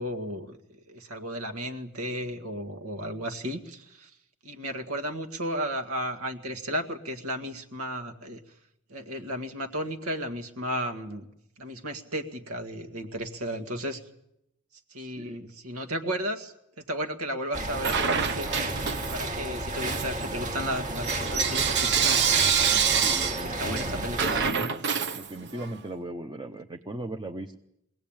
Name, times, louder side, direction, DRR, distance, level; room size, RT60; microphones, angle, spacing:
voice 1, 0.0-4.1 4.4-8.4 8.9-11.3 11.6-14.0 14.9-18.7 19.1-22.3 22.5-24.7, equal, 80° right, 6 dB, 1.9 m, -34 dB
voice 2, 15.0-15.4 23.0-24.4 25.1-27.6, right 1 dB, 20° right, 4 dB, 0.8 m, -38 dB
sound 1, 17.5-24.5, right 1 dB, 35° right, 1.6 m, -33 dB
Bell / Coin (dropping), 17.8-19.4 19.7-25.7, right 7 dB, 55° right, 1.0 m, -27 dB
23.0 x 17.5 x 8.9 m, 0.82 s
head